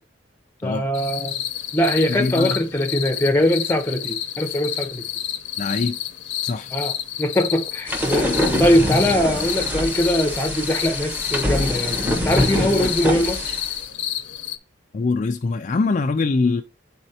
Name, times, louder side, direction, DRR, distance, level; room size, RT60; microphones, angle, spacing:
voice 1, 0.6-1.4 1.7-5.0 6.7-6.9 7.2-8.3 8.6-13.5, equal, 10° left, 0.8 m, -21 dB
sound 1, 0.9-14.6, left 11 dB, 70° left, 0.7 m, -30 dB
voice 2, 2.1-2.6 5.6-6.0 6.4-6.7 14.9-16.6, left 3 dB, 40° left, 0.4 m, -23 dB
sound 2, 7.9-13.8, left 1 dB, 10° right, 1.3 m, -24 dB
8.9 x 4.2 x 2.8 m
head